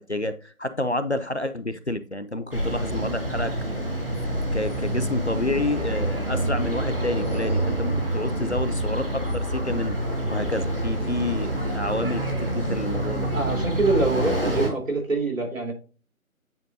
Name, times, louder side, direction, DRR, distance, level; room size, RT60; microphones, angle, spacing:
voice 1, 0.0-3.5 4.3-10.0 10.3-13.3, left 1 dB, 50° left, 12 dB, 0.6 m, -29 dB
sound 1, 2.5-14.7, right 1 dB, 40° right, 1.9 m, -27 dB
sound 2, 10.0-15.1, equal, 25° right, 1.9 m, -44 dB
voice 2, 13.3-15.7, right 2 dB, 60° right, 2 dB, 3.6 m, -25 dB
9.3 x 5.1 x 2.6 m, 0.37 s
figure-of-eight pair, 175°, 44 cm